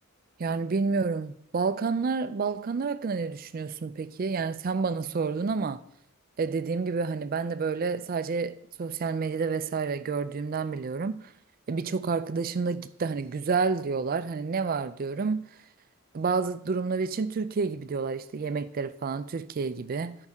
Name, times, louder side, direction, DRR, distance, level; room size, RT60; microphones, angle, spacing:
voice 1, 0.4-5.8 6.4-11.2 11.7-15.4 16.1-20.2, right 4 dB, 40° right, 0.4 m, -29 dB
14.0 x 5.4 x 3.5 m
head